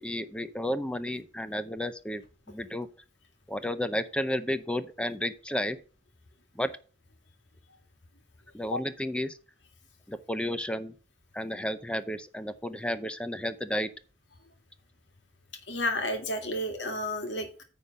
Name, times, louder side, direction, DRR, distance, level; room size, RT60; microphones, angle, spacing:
voice 1, 0.0-2.9 3.5-5.8 6.5-6.7 8.5-9.4 10.1-10.9 11.3-13.9, left 1 dB, 5° left, 11 dB, 0.6 m, -32 dB
voice 2, 15.7-17.6, left 1 dB, 70° left, 5 dB, 2.0 m, -31 dB
9.7 x 3.8 x 6.5 m, 0.36 s
head